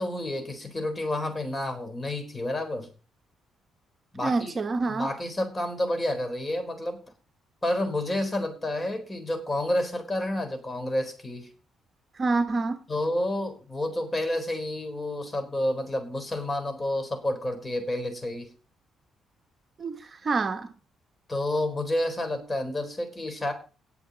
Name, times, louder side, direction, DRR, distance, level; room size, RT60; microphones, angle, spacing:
voice 1, 0.0-2.9 4.1-4.6 4.9-7.0 7.6-11.5 12.9-18.5 21.3-23.5, left 1 dB, 20° left, 4.0 m, -29 dB
voice 2, 4.2-5.1 12.2-12.8 19.8-20.7, right 3 dB, 35° right, 1.2 m, -27 dB
18.5 x 7.1 x 4.1 m
cardioid pair, 90°, 0 cm